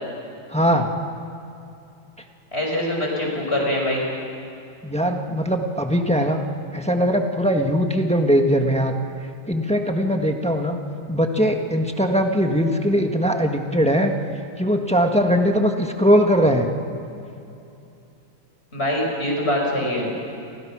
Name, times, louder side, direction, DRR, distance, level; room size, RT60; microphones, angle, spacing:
voice 1, 0.5-0.9 4.8-6.4 6.7-8.9 9.5-10.8 11.1-14.1 14.6-16.7, equal, 5° left, 3 dB, 1.3 m, -20 dB
voice 2, 2.5-4.0 18.7-20.1, left 1 dB, 30° left, -1 dB, 6.2 m, -23 dB
30.0 x 25.0 x 6.2 m, 2.7 s
omnidirectional pair, 2.2 m